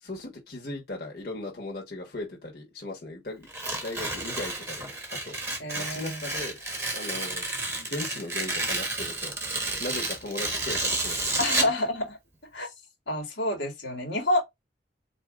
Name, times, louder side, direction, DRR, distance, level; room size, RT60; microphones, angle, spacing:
voice 1, 0.0-3.5 3.8-5.4 5.7-6.6 6.9-9.3 9.8-11.7, left 2 dB, 55° left, 1.3 m, -38 dB
Tearing, 3.5-11.8, right 2 dB, 15° right, 1.1 m, -31 dB
voice 2, 5.6-6.2 11.4-12.2 12.5-12.7 13.1-14.4, left 1 dB, 80° left, 1.6 m, -28 dB
4.2 x 2.8 x 3.7 m
head